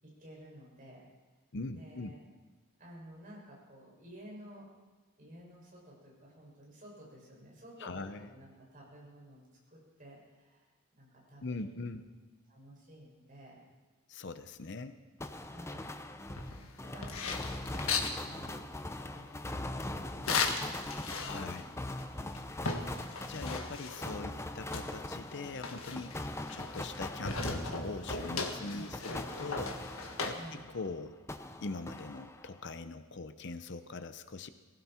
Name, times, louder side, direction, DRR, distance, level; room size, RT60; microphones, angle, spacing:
voice 1, 0.0-1.1 1.7-2.2 2.8-4.7 5.2-9.4 9.7-10.7 11.0-12.0 12.5-13.6 15.5-15.9 16.3-18.7 19.1-22.3 28.7-28.9 30.3-30.7, equal, 40° right, -3 dB, 6.3 m, -53 dB
voice 2, 1.5-2.1 7.8-8.3 11.4-12.2 14.1-15.0 21.2-21.7 23.3-26.2 26.5-29.8 30.3-31.2 31.6-34.5, left 3 dB, 55° left, 10 dB, 0.7 m, -42 dB
sound 1, 15.2-30.9 31.3-32.6, left 1 dB, 15° left, 0.7 m, -42 dB
sound 2, 16.3-18.2 20.3-21.6 22.0-22.1 22.3-24.2 24.7-27.0 27.2-30.3, left 4 dB, 80° left, 1.7 m, -37 dB
19.5 x 16.5 x 4.4 m, 1.3 s
head